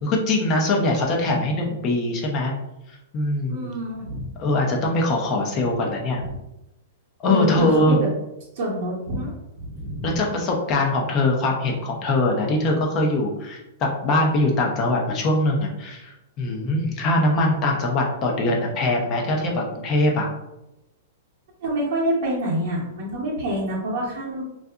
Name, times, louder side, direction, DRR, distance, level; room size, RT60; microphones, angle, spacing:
voice 1, 0.0-2.5 3.1-3.7 4.4-6.2 7.2-8.0 10.0-20.3, left 2 dB, 35° left, 0 dB, 0.5 m, -22 dB
voice 2, 3.5-4.2 7.2-8.1 8.5-9.3 9.6-10.1 21.6-24.4, right 1 dB, 60° right, -5 dB, 0.8 m, -26 dB
2.6 x 2.3 x 2.3 m, 0.92 s
hypercardioid pair, 140°, 0 cm